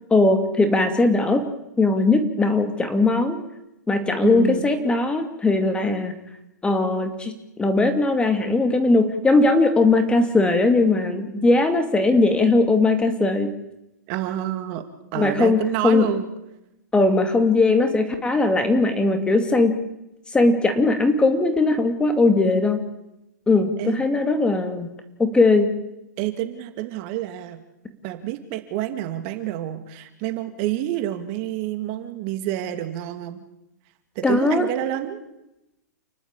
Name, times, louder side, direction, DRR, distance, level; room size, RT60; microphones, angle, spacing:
voice 1, 0.1-1.4 1.8-3.4 3.9-6.1 6.6-13.5 15.1-16.1 16.9-19.8 20.3-22.9 23.5-24.9 25.2-25.8 34.2-34.7, left 3 dB, 10° left, 7 dB, 2.4 m, -19 dB
voice 2, 4.2-4.7 14.1-14.8 15.1-16.3 23.8-24.0 26.2-27.6 28.0-33.4 34.1-35.2, right 13 dB, 45° right, 8 dB, 2.6 m, -28 dB
29.5 x 12.0 x 8.9 m, 0.90 s
hypercardioid pair, 125°, 10 cm